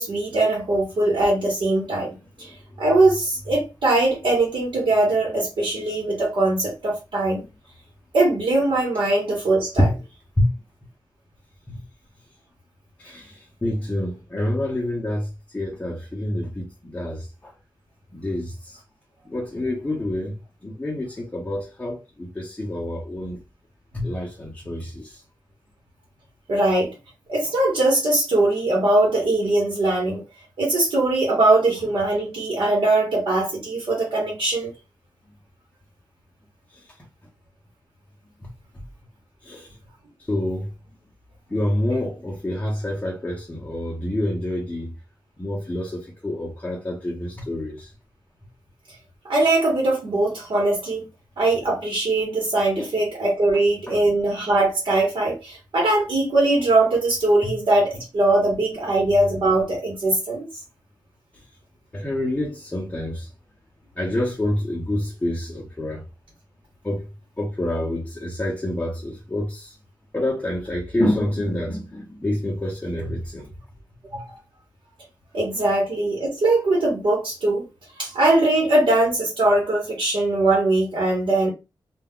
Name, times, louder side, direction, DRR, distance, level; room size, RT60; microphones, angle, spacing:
voice 1, 0.0-7.4 8.1-9.9 26.5-27.0 27.3-30.2 30.6-34.7 49.2-51.1 51.4-60.4 74.1-74.3 75.3-77.6 77.9-81.5, right 2 dB, 80° right, 1.0 m, -21 dB
voice 2, 13.0-17.5 18.1-18.8 19.3-20.3 20.6-23.4 23.9-25.2 36.7-36.8 38.4-38.5 38.7-38.8 39.4-39.8 40.3-40.7 41.5-44.9 45.4-47.9 52.8-52.9 53.9-54.0 57.4-57.5 61.3-61.4 61.9-63.3 64.0-66.0 66.8-67.1 67.4-69.8 70.1-73.5 74.1-74.2 75.6-75.7, left 1 dB, 15° left, 0.7 m, -27 dB
2.3 x 2.2 x 3.6 m
wide cardioid pair, 115°, 8 cm